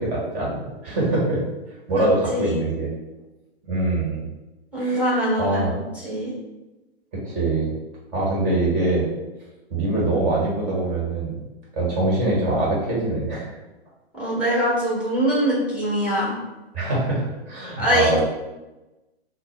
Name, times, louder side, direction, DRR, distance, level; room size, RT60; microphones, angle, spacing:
voice 1, 0.0-1.4 1.9-2.9 3.6-4.3 4.8-5.1 5.4-5.7 7.2-7.7 8.1-9.1 9.7-11.3 11.7-13.5 16.7-18.2, right 2 dB, 30° right, -5 dB, 1.4 m, -23 dB
voice 2, 4.7-6.3 14.2-16.3 17.8-18.2, equal, 5° right, -7 dB, 1.2 m, -23 dB
4.0 x 2.0 x 3.2 m, 1.1 s
figure-of-eight pair, 110°, 32 cm